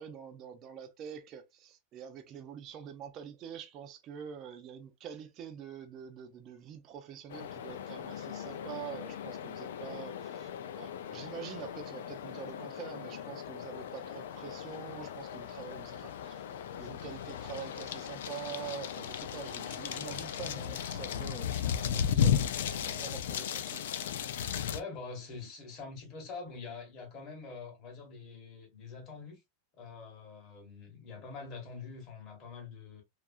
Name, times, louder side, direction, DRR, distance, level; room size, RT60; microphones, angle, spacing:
voice 1, 0.0-10.5 10.8-16.5 16.8-23.8, right 8 dB, 25° right, 0.3 m, -46 dB
sound 1, 7.3-24.8, left 8 dB, 65° left, 0.3 m, -36 dB
voice 2, 24.7-29.4 29.7-33.0, left 4 dB, 25° left, 0.8 m, -45 dB
2.8 x 2.4 x 2.3 m
supercardioid pair, 180°, 0 cm